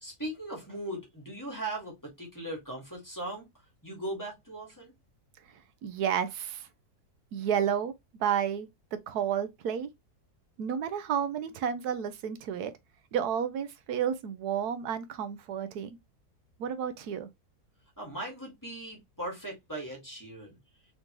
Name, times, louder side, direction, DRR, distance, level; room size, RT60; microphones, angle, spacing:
voice 1, 0.0-3.5 3.8-4.9 18.0-20.6, right 1 dB, 10° left, 1.9 m, -39 dB
voice 2, 5.8-6.7 7.3-7.9 8.2-8.7 9.1-9.9 10.6-12.7 13.1-16.0 16.6-17.3, right 8 dB, 85° right, 1.2 m, -31 dB
3.8 x 3.7 x 3.0 m
omnidirectional pair, 1.6 m